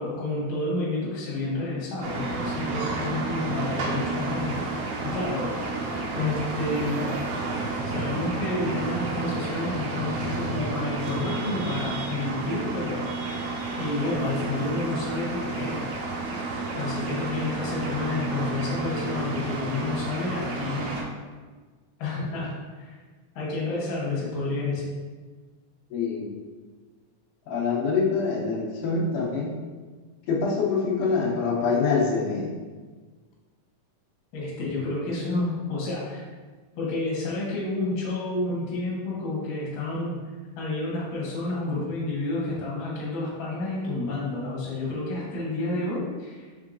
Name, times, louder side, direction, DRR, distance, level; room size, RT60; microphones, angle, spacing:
voice 1, 0.0-5.5 6.1-7.1 7.9-13.0 13.8-15.8 16.7-20.9 22.0-23.0 23.3-24.9 34.3-36.2 36.7-40.2 40.6-46.7, left 2 dB, 50° left, -6 dB, 1.2 m, -30 dB
sound 1, 2.0-21.0, right 3 dB, 85° right, 2.2 m, -31 dB
voice 2, 25.9-26.3 27.5-29.5 30.3-32.5, left 4 dB, 90° left, -3 dB, 2.3 m, -25 dB
5.4 x 3.6 x 2.5 m, 1.4 s
omnidirectional pair, 3.5 m